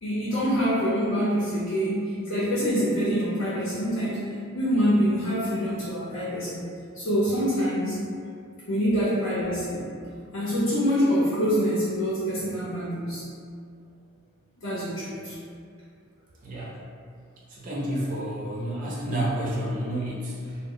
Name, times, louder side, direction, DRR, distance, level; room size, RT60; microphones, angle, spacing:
voice 1, 0.0-6.6 6.9-8.0 8.7-9.9 10.3-13.2 14.6-15.4, equal, 80° left, -9 dB, 0.6 m, -25 dB
voice 2, 16.4-16.8 17.5-20.6, right 1 dB, 40° right, -6 dB, 0.4 m, -30 dB
2.0 x 2.0 x 3.6 m, 2.3 s
head